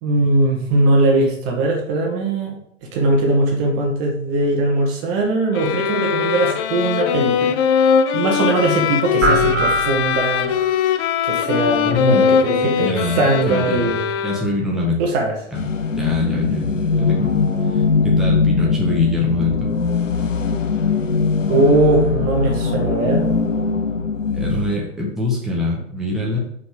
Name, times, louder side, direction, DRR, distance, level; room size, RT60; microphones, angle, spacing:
voice 1, 0.0-2.6 2.8-7.6 8.1-10.5 11.2-14.0 15.0-15.4 21.5-23.3, right 2 dB, 35° right, 0 dB, 2.0 m, -20 dB
sound 1, 5.5-14.7, left 7 dB, 25° left, 0.4 m, -20 dB
sound 2, 9.2-10.8, right 2 dB, 70° right, 2.1 m, -21 dB
voice 2, 11.9-12.3 12.6-13.9 14.2-15.0 15.5-15.7 16.0-16.7 17.0-17.3 17.7-19.8 24.3-26.4, left 2 dB, ahead, -4 dB, 1.7 m, -24 dB
sound 3, 15.5-24.8, left 4 dB, 90° left, 0.7 m, -20 dB
6.0 x 5.7 x 5.1 m, 0.72 s
figure-of-eight pair, 100°, 37 cm